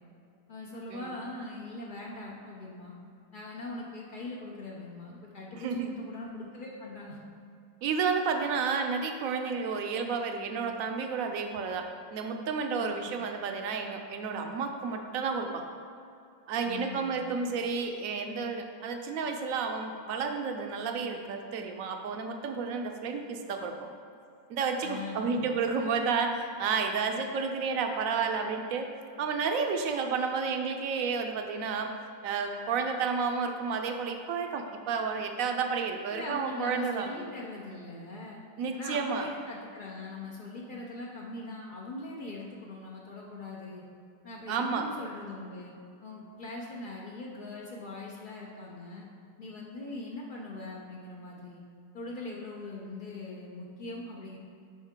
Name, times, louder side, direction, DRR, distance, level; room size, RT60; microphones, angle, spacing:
voice 1, 0.5-3.0 3.3-7.2 12.8-13.1 16.6-17.2 24.8-25.5 36.1-38.4 38.7-43.8 44.2-45.7 46.0-49.1 49.4-51.6 51.9-54.4, left 2 dB, 85° left, -3 dB, 0.4 m, -41 dB
voice 2, 5.5-5.9 7.8-15.7 16.5-23.7 24.5-28.9 29.2-31.9 32.2-37.1 38.6-39.3 44.5-44.9, right 5 dB, 70° right, 5 dB, 0.8 m, -31 dB
8.8 x 5.5 x 3.7 m, 2.5 s
omnidirectional pair, 1.9 m